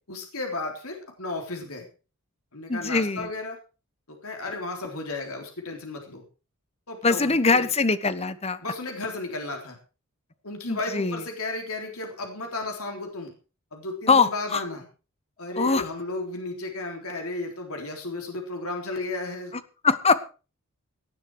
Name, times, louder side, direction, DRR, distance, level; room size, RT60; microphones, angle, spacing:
voice 1, 0.0-1.9 2.5-3.6 4.1-6.2 6.9-7.7 8.6-9.8 10.4-13.3 13.7-14.9 15.4-19.5, left 2 dB, 70° left, 2 dB, 3.7 m, -34 dB
voice 2, 2.7-3.3 7.0-8.6 10.7-11.2 14.1-14.6 15.5-15.9 19.8-20.2, left 4 dB, 30° left, 14 dB, 1.0 m, -22 dB
18.5 x 10.0 x 4.8 m, 0.34 s
head